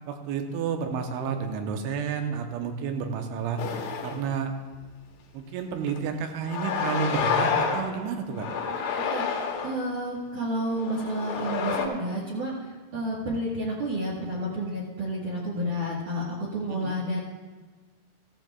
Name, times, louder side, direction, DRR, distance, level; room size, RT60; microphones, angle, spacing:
voice 1, 0.1-3.6 4.0-4.5 5.3-8.5 16.6-17.0, right 6 dB, 85° right, 5 dB, 3.2 m, -30 dB
sound 1, 3.6-4.3 4.7-4.8 5.9-6.0 6.5-7.9 8.3-9.8 10.6-11.9, left 6 dB, 80° left, 3.4 m, -29 dB
voice 2, 9.6-17.2, equal, 60° right, -6 dB, 2.5 m, -30 dB
15.0 x 15.0 x 2.3 m, 1.3 s
omnidirectional pair, 5.4 m